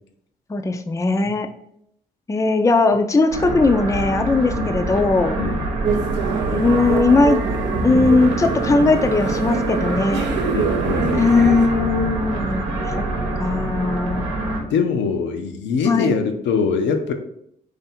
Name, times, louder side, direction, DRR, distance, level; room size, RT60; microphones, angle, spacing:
voice 1, 0.5-1.5 2.3-5.4 6.5-7.4 7.8-10.3 11.1-13.1 13.4-14.3 15.8-16.1, left 3 dB, 15° left, 6 dB, 0.5 m, -19 dB
sound 1, 3.3-14.6, right 2 dB, 75° right, 0.9 m, -25 dB
sound 2, 5.8-11.7, right 6 dB, 60° right, 0.5 m, -26 dB
voice 2, 10.5-11.6 14.7-17.1, left 5 dB, 65° left, 6 dB, 0.6 m, -23 dB
3.4 x 2.6 x 4.1 m, 0.72 s
hypercardioid pair, 45°, 20 cm